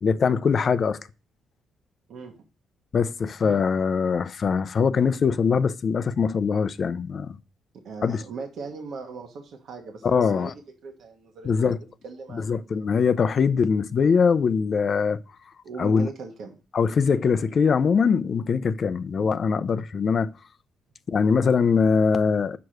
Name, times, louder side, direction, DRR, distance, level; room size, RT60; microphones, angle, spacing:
voice 1, 0.0-1.0 2.9-7.4 8.0-8.2 10.0-10.5 11.4-11.8 12.3-15.2 15.8-16.1 16.7-20.3 21.1-22.6, left 5 dB, 45° left, 0.5 m, -22 dB
voice 2, 2.1-2.4 7.7-10.5 10.8-11.8 12.0-12.9 15.6-16.6, right 4 dB, 65° right, 1.3 m, -39 dB
6.1 x 4.8 x 6.4 m
cardioid pair, 90°, 0 cm